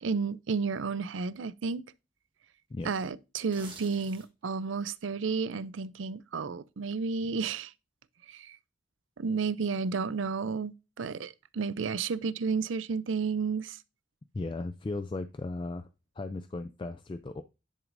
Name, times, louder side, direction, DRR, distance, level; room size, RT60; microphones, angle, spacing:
voice 1, 0.0-1.8 2.8-7.7 8.3-8.6 9.2-13.8, right 5 dB, 80° right, 0.5 m, -32 dB
sound 1, 3.4-4.5 4.9-5.1, right 4 dB, 25° right, 1.6 m, -48 dB
voice 2, 14.3-15.9 16.2-17.4, left 2 dB, 25° left, 0.3 m, -36 dB
10.5 x 6.1 x 2.6 m
head